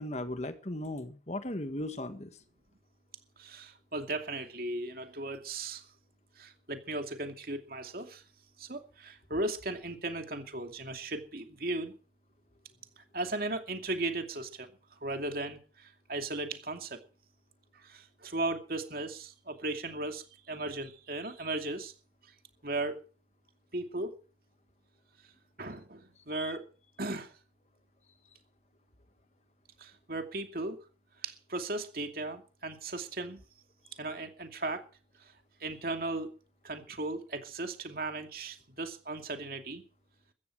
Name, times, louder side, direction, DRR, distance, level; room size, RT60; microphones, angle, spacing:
voice 1, 0.0-2.3 26.3-26.5, left 1 dB, 40° left, 1.6 m, -37 dB
voice 2, 3.4-5.9 6.4-8.2 8.6-11.9 13.0-14.7 15.0-17.0 17.7-21.9 22.6-23.0 23.7-24.2 25.6-26.7 27.0-27.3 29.8-30.8 31.2-33.4 34.0-34.8 35.2-35.3 35.6-36.3 36.6-39.8, right 2 dB, 55° right, 2.5 m, -36 dB
15.5 x 14.5 x 4.7 m
head